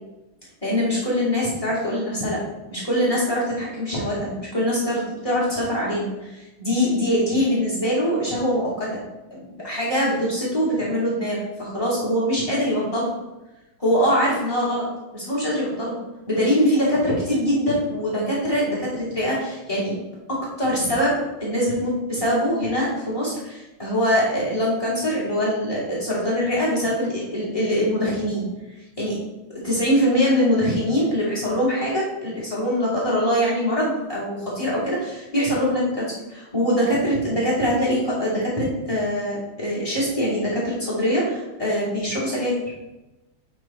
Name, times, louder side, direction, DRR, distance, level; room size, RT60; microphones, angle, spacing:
voice 1, 0.6-2.4 2.7-9.0 9.3-9.4 9.6-13.1 13.8-14.8 15.1-16.0 16.3-19.9 20.3-28.5 29.0-29.2 29.6-42.6, equal, 15° left, -8 dB, 2.6 m, -23 dB
8.3 x 4.2 x 4.3 m, 1.0 s
omnidirectional pair, 2.1 m